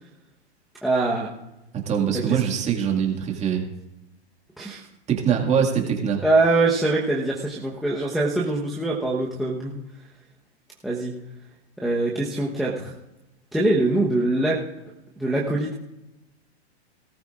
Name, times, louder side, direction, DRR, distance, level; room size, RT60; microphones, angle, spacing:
voice 1, 0.8-1.3 2.1-2.4 4.6-4.9 6.2-9.8 10.8-11.2 11.8-12.9 13.5-14.6 15.2-15.7, right 2 dB, ahead, -6 dB, 1.1 m, -23 dB
voice 2, 1.9-3.6 5.1-6.2, right 8 dB, 20° right, 1 dB, 2.0 m, -23 dB
19.0 x 13.5 x 2.5 m, 0.96 s
hypercardioid pair, 140°, 33 cm